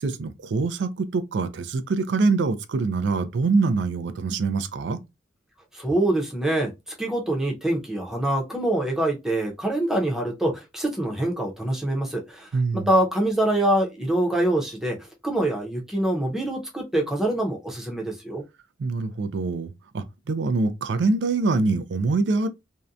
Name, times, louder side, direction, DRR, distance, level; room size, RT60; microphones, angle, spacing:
voice 1, 0.0-5.0 12.5-12.9 18.8-22.5, right 3 dB, 85° right, 0.4 m, -24 dB
voice 2, 5.7-6.7 7.0-15.0 15.2-18.4, right 1 dB, 5° right, 0.6 m, -25 dB
2.6 x 2.1 x 2.3 m
head